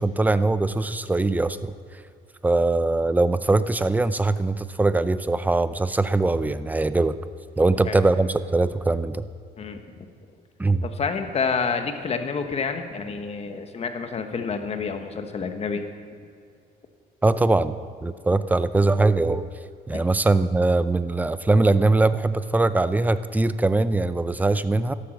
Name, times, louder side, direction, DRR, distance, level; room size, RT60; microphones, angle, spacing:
voice 1, 0.0-1.7 2.4-7.2 7.6-9.3 10.6-10.9 17.2-19.5 19.9-24.9, right 2 dB, 10° right, 13 dB, 0.5 m, -21 dB
voice 2, 10.8-15.8 19.9-20.0, left 5 dB, 40° left, 7 dB, 1.3 m, -28 dB
13.0 x 12.0 x 6.5 m, 2.4 s
cardioid pair, 110°, 17 cm